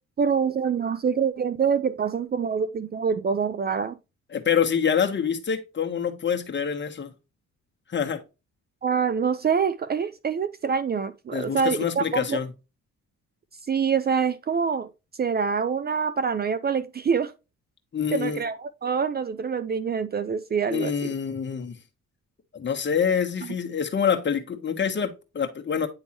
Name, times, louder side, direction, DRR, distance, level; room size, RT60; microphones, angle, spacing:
voice 1, 0.2-4.0 8.8-12.4 13.7-14.9 15.2-17.3 18.1-21.1, right 6 dB, 35° right, 0.5 m, -25 dB
voice 2, 4.3-7.1 7.9-8.2 11.3-12.5 17.9-18.4 20.7-21.8 22.5-25.9, left 7 dB, 40° left, 1.2 m, -26 dB
9.7 x 3.5 x 3.0 m
cardioid pair, 90°, 30 cm